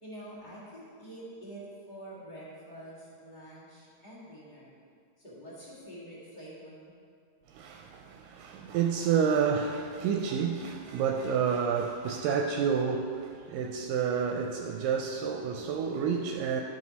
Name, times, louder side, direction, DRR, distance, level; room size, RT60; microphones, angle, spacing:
voice 1, 0.0-4.7 5.2-6.9, right 1 dB, 25° left, 1.0 m, -46 dB
voice 2, 7.5-16.6, right 7 dB, 80° right, 2.1 m, -29 dB
13.0 x 4.9 x 4.1 m
omnidirectional pair, 4.0 m